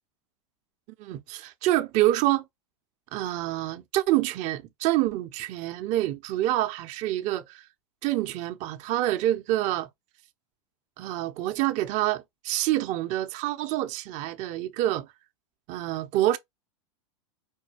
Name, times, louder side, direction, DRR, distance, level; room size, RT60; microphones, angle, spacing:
voice 1, 1.0-2.4 3.1-7.6 8.0-9.9 11.0-15.1 15.7-16.4, right 15 dB, 45° right, 1.0 m, -27 dB
5.3 x 2.3 x 3.3 m
hypercardioid pair, 115°, 17 cm